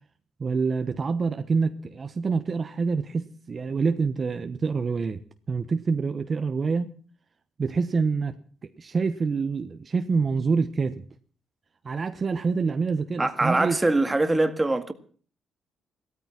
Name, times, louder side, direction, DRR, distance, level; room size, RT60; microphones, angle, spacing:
voice 1, 0.4-5.2 5.5-6.9 7.6-8.4 8.8-11.0 11.8-13.8, right 4 dB, 40° right, 1.2 m, -26 dB
voice 2, 13.2-14.9, right 2 dB, 15° right, 1.9 m, -23 dB
16.0 x 13.5 x 6.0 m
cardioid pair, 90°, 0 cm